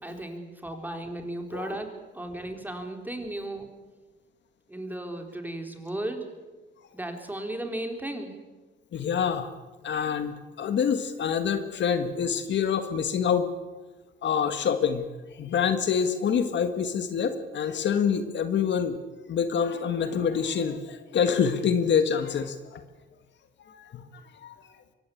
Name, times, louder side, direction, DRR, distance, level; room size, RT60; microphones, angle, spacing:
voice 1, 0.0-3.7 4.7-6.3 6.9-8.3, right 1 dB, 10° right, 4 dB, 4.1 m, -35 dB
voice 2, 8.9-9.5 9.8-13.5 14.2-15.1 15.4-19.0 19.3-22.8 23.7-24.1 24.4-24.5, left 7 dB, 65° left, 9 dB, 1.7 m, -26 dB
23.5 x 18.0 x 8.5 m, 1.2 s
cardioid pair, 90°, 20 cm